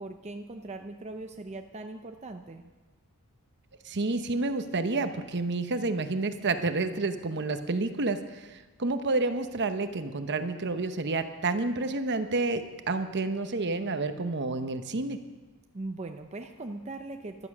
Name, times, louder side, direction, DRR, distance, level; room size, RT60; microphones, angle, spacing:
voice 1, 0.0-2.7 15.7-17.5, right 2 dB, 30° right, 5 dB, 0.7 m, -40 dB
voice 2, 3.8-15.2, right 3 dB, 55° right, 9 dB, 1.0 m, -29 dB
15.0 x 12.0 x 6.1 m, 1.2 s
head